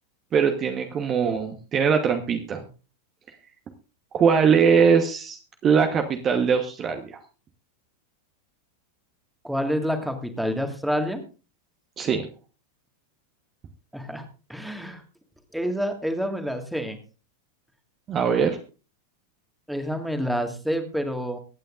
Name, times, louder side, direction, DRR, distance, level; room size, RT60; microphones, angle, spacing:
voice 1, 0.3-2.7 4.1-7.2 12.0-12.3 18.1-18.6, right 6 dB, 25° right, 5 dB, 1.2 m, -21 dB
voice 2, 9.4-11.2 13.9-14.2 14.5-15.0 15.5-17.0 19.7-21.4, equal, ahead, 5 dB, 1.9 m, -28 dB
24.0 x 9.0 x 2.5 m, 0.34 s
figure-of-eight pair, 90°, 0 cm